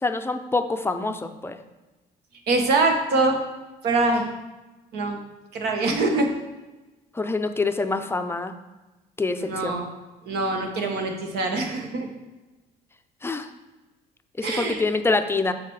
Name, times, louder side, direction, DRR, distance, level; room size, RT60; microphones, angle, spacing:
voice 1, 0.0-1.6 7.1-8.5 9.2-9.8 13.2-13.5 14.4-15.5, left 3 dB, 15° left, 8 dB, 0.5 m, -26 dB
voice 2, 2.5-3.4 3.8-4.3 4.9-5.2 5.5-6.3 9.4-9.9 10.3-12.1 14.4-14.8, right 3 dB, 75° right, 3 dB, 1.3 m, -23 dB
6.7 x 4.9 x 4.7 m, 1.1 s
cardioid pair, 110°, 17 cm